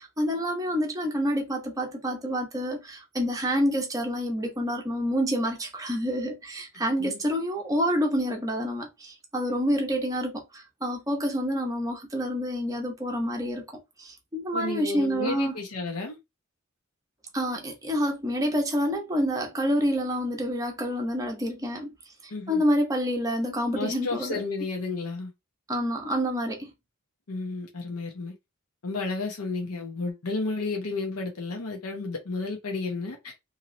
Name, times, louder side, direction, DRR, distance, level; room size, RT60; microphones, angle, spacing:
voice 1, 0.0-15.6 17.3-21.9 22.2-24.4 25.7-26.7, equal, 15° right, 0.7 m, -28 dB
voice 2, 14.5-16.2 22.3-22.6 23.7-25.3 27.3-28.3 28.8-33.3, left 3 dB, 85° left, 0.8 m, -32 dB
3.0 x 2.8 x 2.6 m
head